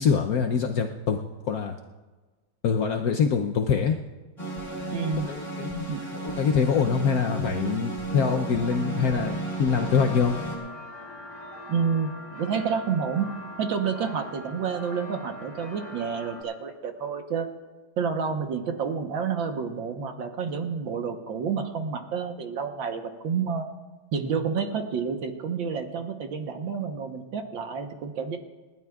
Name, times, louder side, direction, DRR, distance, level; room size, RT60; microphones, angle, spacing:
voice 1, 0.0-1.8 2.6-4.0 5.2-10.4, left 6 dB, 75° left, 3 dB, 0.8 m, -25 dB
sound 1, 4.4-10.6, right 2 dB, 15° left, 4.1 m, -33 dB
voice 2, 4.9-5.3 5.9-6.0 11.7-13.3 13.6-17.5 18.0-23.6 24.1-28.4, right 6 dB, 65° right, 5 dB, 1.7 m, -29 dB
sound 2, 9.7-16.4, left 1 dB, 55° left, 3.7 m, -42 dB
30.0 x 12.5 x 2.4 m, 1.3 s
omnidirectional pair, 2.4 m